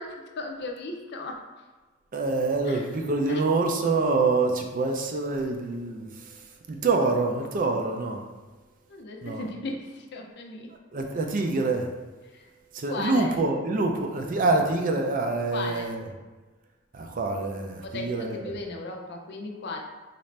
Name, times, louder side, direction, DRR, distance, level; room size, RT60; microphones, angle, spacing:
voice 1, 0.0-1.4 2.7-2.8 3.3-3.4 8.9-10.7 12.3-12.5 12.9-13.4 15.5-15.9 17.8-19.8, left 2 dB, 55° left, 2 dB, 0.5 m, -36 dB
voice 2, 2.1-8.3 9.2-9.5 10.9-11.9 12.7-16.0 16.9-18.5, right 3 dB, 40° right, 3 dB, 0.4 m, -26 dB
4.0 x 2.5 x 3.2 m, 1.2 s
head